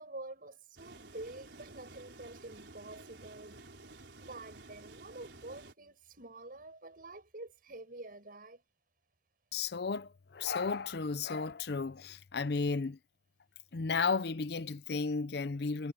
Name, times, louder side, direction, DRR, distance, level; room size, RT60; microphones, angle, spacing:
voice 1, 0.0-3.6 4.2-8.6, right 2 dB, 55° right, 7.8 m, -48 dB
sound 1, 0.8-5.7, right 2 dB, 80° right, 4.3 m, -53 dB
voice 2, 9.5-13.0 13.7-15.9, left 4 dB, 65° left, 0.6 m, -34 dB
head